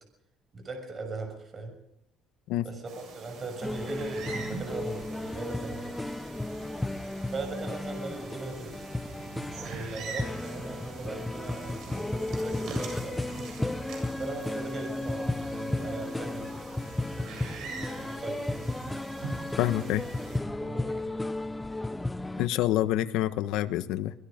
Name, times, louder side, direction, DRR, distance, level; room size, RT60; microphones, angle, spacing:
voice 1, 0.5-1.7 2.6-6.0 7.3-8.8 9.5-13.2 14.2-16.5 17.1-18.7 19.7-19.9 20.6-21.3, right 3 dB, 30° right, 5 dB, 6.4 m, -39 dB
sound 1, 2.9-20.4, right 4 dB, 55° right, 7.8 m, -44 dB
sound 2, 3.6-22.5, left 2 dB, 5° left, 0.7 m, -34 dB
voice 2, 19.6-20.0 22.4-24.1, left 13 dB, 80° left, 11 dB, 1.3 m, -27 dB
24.5 x 20.5 x 5.2 m, 0.78 s
cardioid pair, 140°, 0 cm